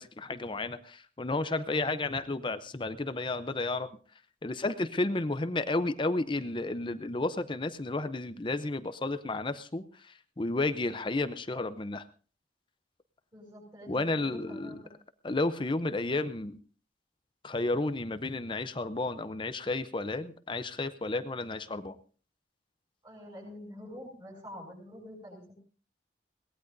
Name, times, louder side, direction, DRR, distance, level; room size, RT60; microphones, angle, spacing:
voice 1, 0.0-3.9 4.4-9.8 10.4-12.0 13.9-14.7 15.2-16.6 17.4-22.0, left 2 dB, 25° left, 12 dB, 0.6 m, -32 dB
voice 2, 13.3-14.9 23.0-25.6, equal, 25° right, -6 dB, 7.2 m, -46 dB
22.0 x 18.5 x 2.6 m, 0.39 s
head